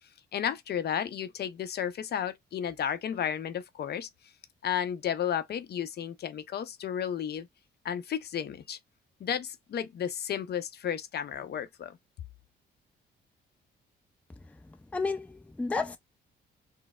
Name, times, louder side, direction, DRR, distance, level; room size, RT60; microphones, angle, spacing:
voice 1, 0.3-4.1 4.6-7.5 7.8-8.8 9.2-12.0, left 9 dB, 55° left, 0.6 m, -33 dB
voice 2, 14.9-16.0, left 3 dB, 5° left, 0.4 m, -31 dB
4.0 x 2.0 x 2.2 m
cardioid pair, 90°, 20 cm